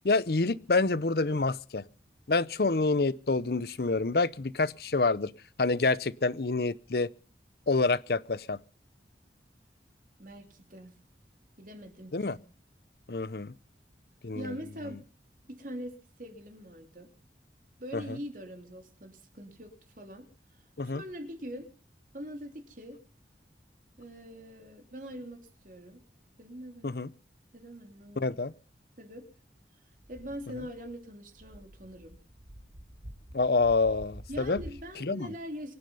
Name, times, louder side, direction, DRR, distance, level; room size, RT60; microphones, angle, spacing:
voice 1, 0.0-1.8 2.3-5.3 5.6-7.1 7.7-8.6 12.1-12.4 13.1-13.5 14.2-14.6 17.9-18.2 20.8-21.0 26.8-27.1 28.2-28.5 33.3-34.6 35.0-35.3, left 3 dB, 60° left, 0.7 m, -27 dB
voice 2, 10.2-11.0 11.6-12.4 14.3-15.0 15.5-17.1 17.8-20.3 20.5-21.7 22.1-23.0 24.0-26.0 26.4-26.9 27.5-28.4 29.0-29.3 30.1-32.2 34.3-35.7, equal, 50° right, 3.2 m, -43 dB
sound 1, 29.9-34.9, equal, 75° right, 4.2 m, -48 dB
24.5 x 9.8 x 5.5 m
head